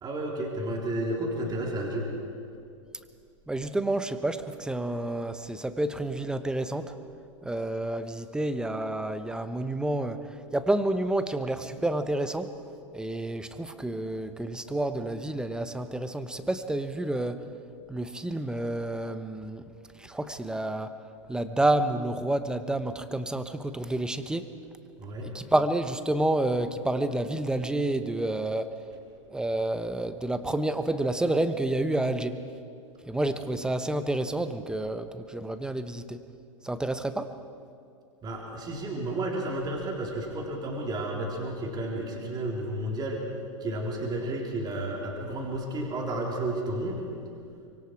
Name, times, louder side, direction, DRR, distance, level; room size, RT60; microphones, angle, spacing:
voice 1, 0.0-2.1 25.0-25.3 38.2-43.2 43.6-47.1, right 1 dB, 25° right, -1 dB, 3.8 m, -32 dB
voice 2, 3.5-6.9 7.4-10.2 10.5-12.5 12.9-17.4 17.9-19.6 20.0-20.9 21.3-24.5 25.2-28.7 29.3-32.4 33.1-36.2 36.6-37.3, right 1 dB, 5° right, 10 dB, 1.0 m, -29 dB
24.5 x 24.0 x 4.8 m, 2.4 s
hypercardioid pair, 115°, 17 cm